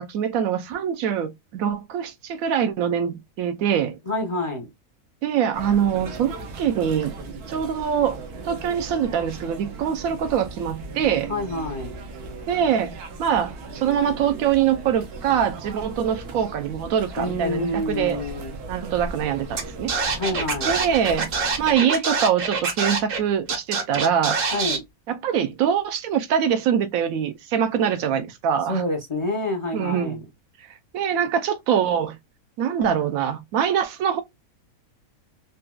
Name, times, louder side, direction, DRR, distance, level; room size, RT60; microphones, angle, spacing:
voice 1, 0.0-4.0 5.2-7.2 7.5-8.2 8.4-11.3 12.5-18.2 18.7-19.9 20.7-21.3 21.6-24.4 25.1-28.8 29.7-30.2 30.9-32.2 32.6-34.2, right 8 dB, 70° right, 1.0 m, -24 dB
voice 2, 4.1-4.7 11.3-11.9 17.2-18.5 20.2-20.7 24.5-24.8 28.7-30.2, left 2 dB, 35° left, 0.5 m, -27 dB
sound 1, 5.5-21.7, right 3 dB, 85° right, 1.3 m, -38 dB
Scratching (performance technique), 19.6-19.7 19.9-23.2 23.5-24.8, right 4 dB, 45° right, 0.8 m, -25 dB
4.0 x 2.2 x 2.2 m
omnidirectional pair, 1.6 m